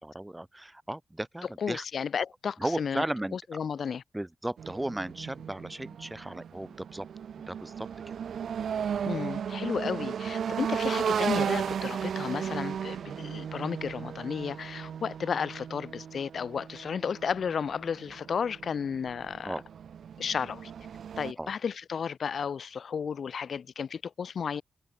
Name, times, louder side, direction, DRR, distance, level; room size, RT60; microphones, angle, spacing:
voice 1, 0.0-1.8 2.6-3.6 4.1-7.1 7.4-8.1 19.4-19.6 21.4-21.5, right 1 dB, 10° right, 0.5 m, -35 dB
voice 2, 1.6-3.0 3.3-4.0 9.1-19.6 20.2-20.7 21.2-24.6, left 6 dB, 65° left, 0.4 m, -33 dB
sound 1, 4.6-21.3, right 8 dB, 80° right, 0.7 m, -35 dB
cardioid pair, 85°, 0 cm